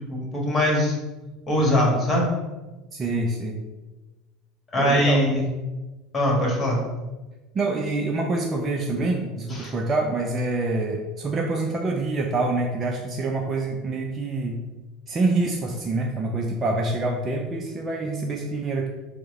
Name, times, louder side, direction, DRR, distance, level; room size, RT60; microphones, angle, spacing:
voice 1, 0.1-0.9 1.5-2.3 4.7-5.4 6.1-6.8 9.5-9.7, left 1 dB, 25° left, -2 dB, 1.4 m, -22 dB
voice 2, 2.9-3.6 4.8-5.2 7.5-14.6 15.1-18.9, right 2 dB, 30° right, 1 dB, 0.4 m, -26 dB
4.6 x 2.1 x 3.9 m, 1.2 s
figure-of-eight pair, 70°, 0 cm